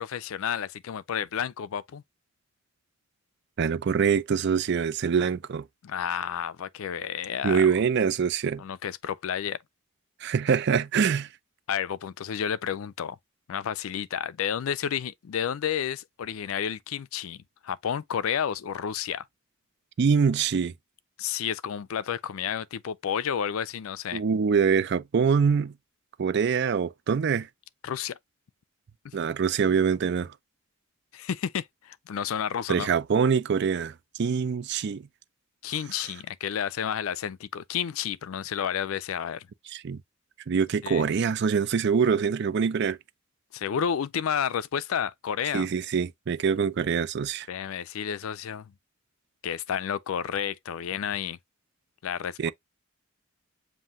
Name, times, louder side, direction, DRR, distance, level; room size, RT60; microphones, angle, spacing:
voice 1, 0.0-2.0 5.8-7.7 8.6-9.6 11.7-13.2 13.5-19.2 21.2-24.2 27.8-28.2 29.0-29.1 31.1-32.9 35.6-39.5 40.8-41.1 43.5-45.7 47.5-48.7 49.4-51.4 52.0-52.5, left 8 dB, 75° left, 0.4 m, -31 dB
voice 2, 3.6-5.6 7.4-8.6 10.2-11.3 20.0-20.7 24.1-25.7 26.2-27.5 29.1-30.3 32.7-35.0 39.7-40.0 40.5-43.0 45.5-47.5 52.4-52.5, right 6 dB, 55° right, 0.4 m, -24 dB
7.4 x 2.6 x 2.5 m
head